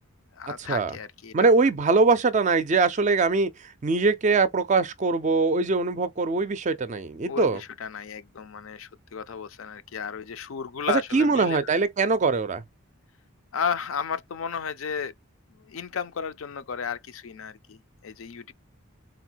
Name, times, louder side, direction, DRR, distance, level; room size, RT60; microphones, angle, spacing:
voice 1, 0.4-1.5 7.2-11.6 13.5-15.1 15.5-18.5, left 6 dB, 65° left, 0.4 m, -33 dB
voice 2, 1.3-7.6 10.9-12.6, right 4 dB, 35° right, 0.4 m, -22 dB
3.9 x 2.1 x 4.4 m
head